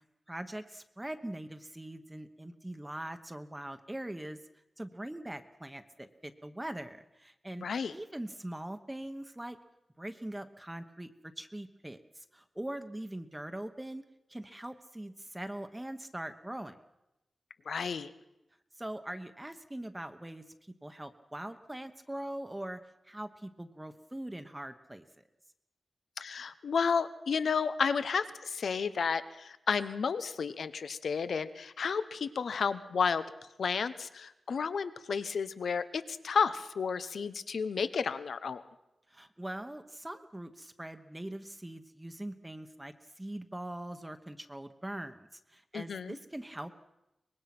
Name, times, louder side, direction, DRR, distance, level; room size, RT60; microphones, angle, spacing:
voice 1, 0.3-4.4 4.8-9.6 10.0-11.1 11.4-14.0 14.3-16.8 18.8-20.4 20.8-22.8 23.0-25.0 39.1-46.8, right 1 dB, 10° right, 8 dB, 1.1 m, -42 dB
voice 2, 7.6-7.9 17.7-18.1 26.2-33.2 33.6-38.6 45.7-46.2, left 6 dB, 80° left, 13 dB, 1.0 m, -32 dB
24.0 x 20.5 x 6.1 m, 0.95 s
wide cardioid pair, 105°, 0 cm